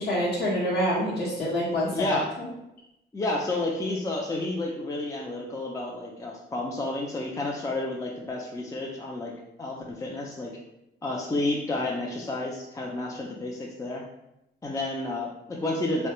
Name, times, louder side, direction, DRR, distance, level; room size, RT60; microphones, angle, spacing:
voice 1, 0.0-2.5, equal, 50° left, -8 dB, 0.9 m, -27 dB
voice 2, 1.7-2.3 3.1-9.3 9.6-10.5 11.0-14.0 14.6-16.1, left 2 dB, 15° left, -1 dB, 0.4 m, -31 dB
3.1 x 2.1 x 2.9 m, 0.87 s
cardioid pair, 90°, 20 cm